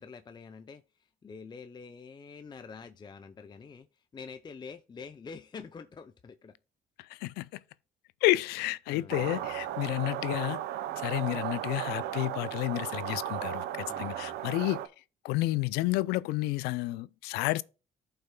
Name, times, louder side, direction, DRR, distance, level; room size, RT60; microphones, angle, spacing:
voice 1, 0.0-6.5 8.9-9.6 13.9-14.4, left 5 dB, 25° left, 0.5 m, -47 dB
voice 2, 7.0-7.5 8.2-10.6 11.0-14.8 15.2-17.6, left 18 dB, 85° left, 0.4 m, -30 dB
sound 1, 9.1-14.9, right 12 dB, 80° right, 0.6 m, -35 dB
14.0 x 5.6 x 2.2 m
supercardioid pair, 75°, 16 cm